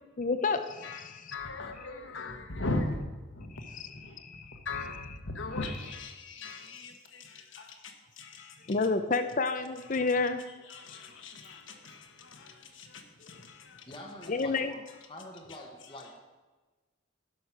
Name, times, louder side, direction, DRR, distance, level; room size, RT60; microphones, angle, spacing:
voice 1, 0.2-1.4 3.5-4.6 4.9-5.0 8.7-10.4 13.2-13.3 14.3-14.7, left 3 dB, 40° left, 0.5 m, -30 dB
voice 2, 0.8-3.0 3.3-4.2 4.6-8.7 10.7-13.9, left 2 dB, 70° left, 1.3 m, -39 dB
voice 3, 13.9-14.8 15.1-16.2, left 1 dB, 25° left, 1.0 m, -46 dB
11.0 x 6.5 x 5.8 m
head